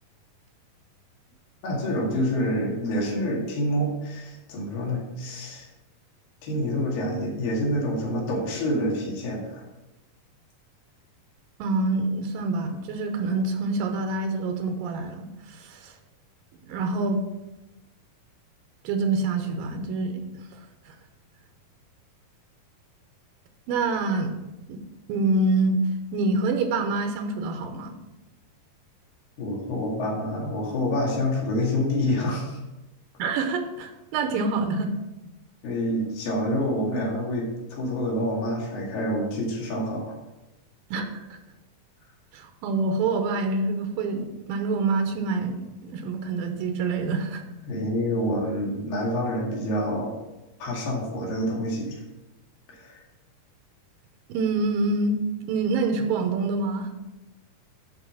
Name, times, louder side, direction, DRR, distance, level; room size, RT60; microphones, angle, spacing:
voice 1, 1.6-5.7 6.4-9.6 29.4-32.6 35.6-40.2 47.7-50.2 50.6-52.0 52.7-53.0, equal, 80° left, -2 dB, 3.8 m, -27 dB
voice 2, 11.6-15.9 16.7-17.2 18.8-20.4 20.9-21.0 23.7-24.4 24.7-24.8 25.1-25.8 26.1-27.9 33.2-34.9 40.9-41.4 42.3-47.4 54.3-55.2 55.5-56.9, right 3 dB, 85° right, 5 dB, 2.6 m, -26 dB
11.5 x 4.8 x 6.0 m, 1.0 s
omnidirectional pair, 4.0 m